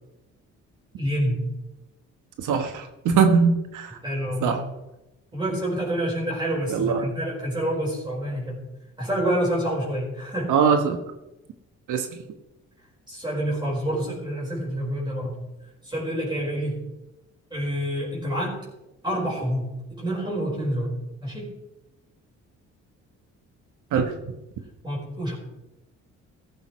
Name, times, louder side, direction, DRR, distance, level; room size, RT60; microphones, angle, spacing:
voice 1, 1.0-1.4 4.0-4.6 5.3-8.6 9.0-10.5 13.1-15.4 15.8-16.9 17.5-18.6 19.0-20.9 21.2-21.5 24.8-25.3, equal, 15° right, -4 dB, 4.7 m, -27 dB
voice 2, 2.4-4.0 4.4-4.6 6.7-7.1 10.5-11.0 11.9-12.1 23.9-24.1, right 6 dB, 80° right, 5 dB, 1.3 m, -21 dB
14.5 x 14.0 x 3.2 m, 0.97 s
cardioid pair, 90°, 30 cm